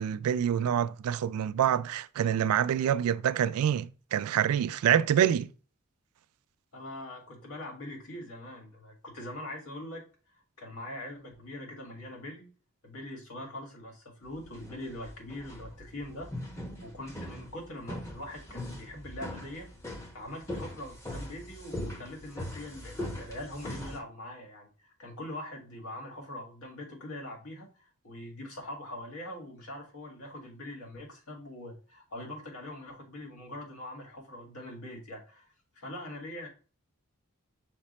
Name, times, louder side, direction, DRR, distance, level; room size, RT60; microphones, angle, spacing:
voice 1, 0.0-5.5, right 9 dB, 85° right, 0.3 m, -26 dB
voice 2, 6.7-10.0 10.3-12.5 12.8-16.3 16.8-19.7 20.1-36.5, left 1 dB, 90° left, 1.6 m, -43 dB
sound 1, 14.3-24.0, left 1 dB, 15° left, 0.7 m, -41 dB
5.9 x 2.1 x 4.1 m
head